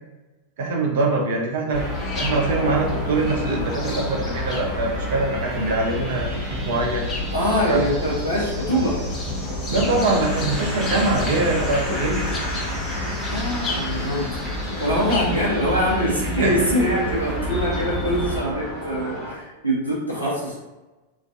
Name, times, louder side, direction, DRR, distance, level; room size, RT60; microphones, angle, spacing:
voice 1, 0.6-1.8 2.2-7.1 7.7-7.8 9.7-12.3 16.4-16.6, right 3 dB, 55° right, 0 dB, 0.4 m, -23 dB
sound 1, 1.7-18.4, left 1 dB, 30° left, 0.5 m, -28 dB
sound 2, 1.7-19.3, right 1 dB, 30° right, 0.9 m, -38 dB
voice 2, 7.3-9.0 13.2-20.6, equal, 85° left, -6 dB, 0.7 m, -24 dB
Applause / Crowd, 9.8-16.2, equal, 5° left, 0.9 m, -34 dB
2.4 x 2.2 x 2.4 m, 1.1 s
figure-of-eight pair, 90°, 0 cm